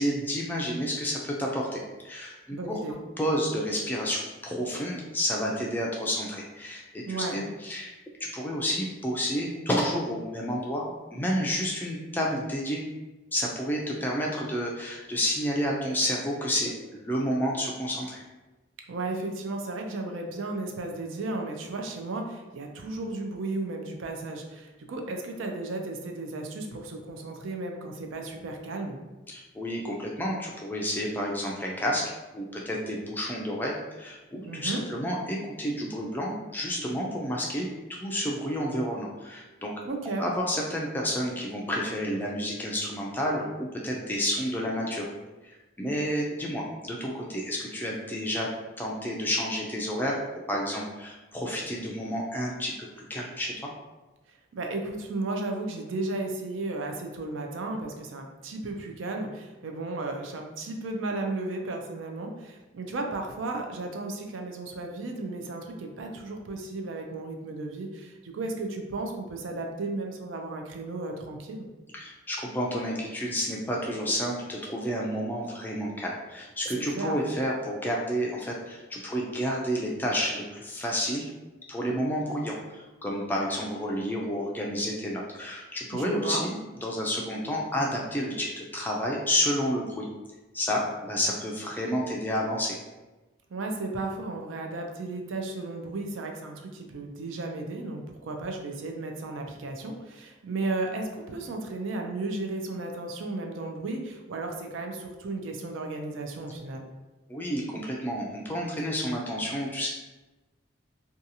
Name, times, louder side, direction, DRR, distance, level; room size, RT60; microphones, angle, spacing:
voice 1, 0.0-2.8 3.2-7.9 8.2-12.8 13.3-18.2 29.3-39.7 40.2-45.1 45.4-48.5 48.8-50.2 50.5-53.5 71.9-81.3 81.7-86.5 86.8-90.1 90.5-92.7 107.3-109.9, equal, 10° left, -2 dB, 0.3 m, -30 dB
voice 2, 2.5-3.0 7.1-7.4 18.9-29.0 34.4-34.8 39.8-40.3 54.5-71.7 76.9-77.1 85.9-86.5 93.5-106.9, right 2 dB, 80° right, 3 dB, 0.4 m, -34 dB
2.7 x 2.3 x 2.6 m, 1.1 s
head